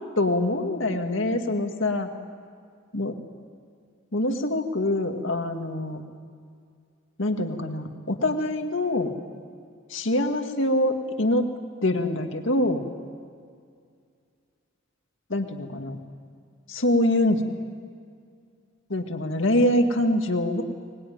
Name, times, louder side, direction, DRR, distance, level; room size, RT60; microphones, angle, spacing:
voice 1, 0.2-2.1 2.9-3.1 4.1-6.0 7.2-9.1 9.9-11.5 11.8-12.8 15.3-16.0 16.7-17.4 18.9-20.6, left 1 dB, 70° left, 5 dB, 2.1 m, -24 dB
24.0 x 20.0 x 9.4 m, 2.2 s
head